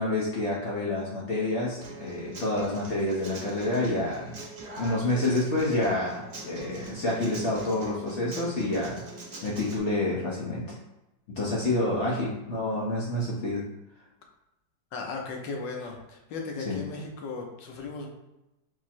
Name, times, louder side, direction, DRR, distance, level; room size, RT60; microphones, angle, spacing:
voice 1, 0.0-4.3 4.8-9.0 9.4-10.7 11.4-13.6 16.6-16.8, left 2 dB, 55° left, -5 dB, 0.8 m, -28 dB
Human voice / Acoustic guitar, 1.8-9.8, right 2 dB, 60° right, 0.4 m, -42 dB
voice 2, 14.9-18.1, left 3 dB, 80° left, 1 dB, 1.4 m, -36 dB
4.7 x 2.0 x 4.3 m, 0.93 s
omnidirectional pair, 1.9 m